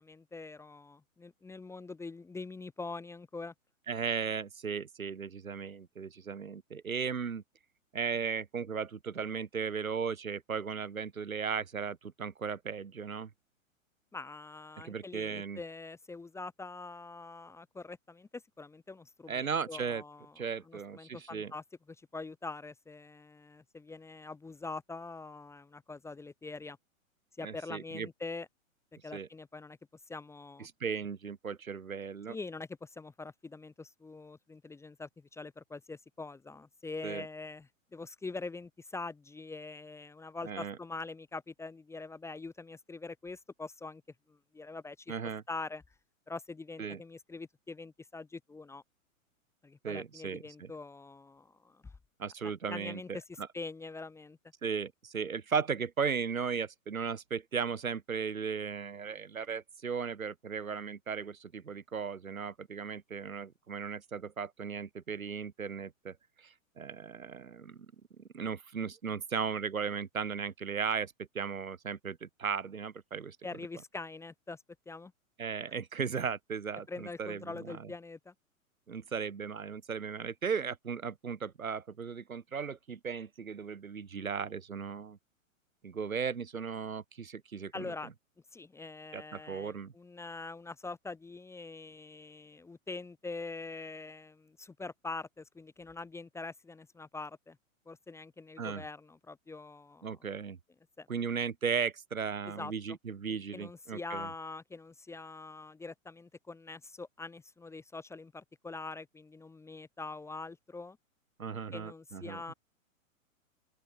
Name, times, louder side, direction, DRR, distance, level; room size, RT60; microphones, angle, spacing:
voice 1, 0.0-3.5 14.1-20.3 20.6-26.8 27.4-28.5 29.0-29.8 30.1-30.7 32.3-44.0 44.3-45.1 45.5-45.8 46.3-48.8 49.6-51.8 52.4-54.4 73.4-74.6 74.9-75.1 76.9-78.3 87.7-88.1 88.5-97.6 97.9-100.2 101.0-101.1 102.5-103.0 103.3-111.0 111.7-112.5, left 3 dB, 5° left, 1.1 m, -44 dB
voice 2, 3.9-7.4 7.9-13.3 14.8-15.6 19.3-20.0 20.4-21.5 27.4-28.1 29.1-29.3 30.6-32.4 37.0-37.3 40.4-40.8 45.1-45.4 46.8-47.0 49.8-50.7 52.2-53.5 54.6-67.9 68.2-73.6 75.4-77.9 78.9-85.2 85.8-87.9 89.1-89.9 98.6-98.8 100.0-100.6 101.1-104.3 111.4-112.5, right 6 dB, 80° right, 2.0 m, -36 dB
open air
figure-of-eight pair, 110°, 41 cm